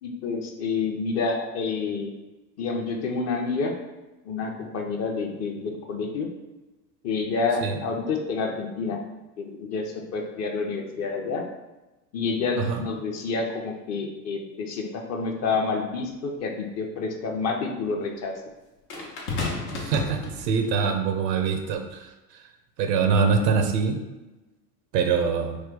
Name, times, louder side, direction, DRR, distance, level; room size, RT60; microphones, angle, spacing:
voice 1, 0.0-2.1 2.6-3.7 4.3-6.3 7.0-9.0 9.4-11.5 12.1-18.3, left 4 dB, 35° left, 2 dB, 0.5 m, -28 dB
sound 1, 16.0-16.1 18.9-20.8 21.7-21.9, left 3 dB, 80° left, 0.9 m, -32 dB
voice 2, 19.7-22.1 22.8-24.0 24.9-25.6, right 5 dB, 80° right, 5 dB, 0.6 m, -24 dB
3.2 x 2.2 x 3.6 m, 1.1 s
hypercardioid pair, 80°, 50 cm